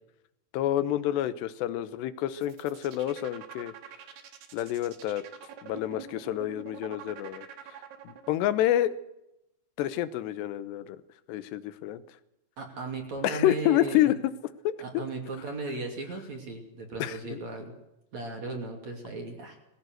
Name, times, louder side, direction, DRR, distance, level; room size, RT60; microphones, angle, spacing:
voice 1, 0.5-3.7 4.5-5.2 5.6-7.5 8.0-8.9 9.8-11.0 11.3-12.0 13.2-14.2 14.6-15.0 17.0-17.4, left 13 dB, 80° left, 14 dB, 3.0 m, -28 dB
sound 1, 2.3-8.5, right 9 dB, 70° right, 3.5 m, -46 dB
voice 2, 12.6-14.1 14.8-17.7 18.1-19.6, right 3 dB, 45° right, 3 dB, 3.7 m, -36 dB
21.5 x 16.5 x 7.9 m, 0.86 s
omnidirectional pair, 5.0 m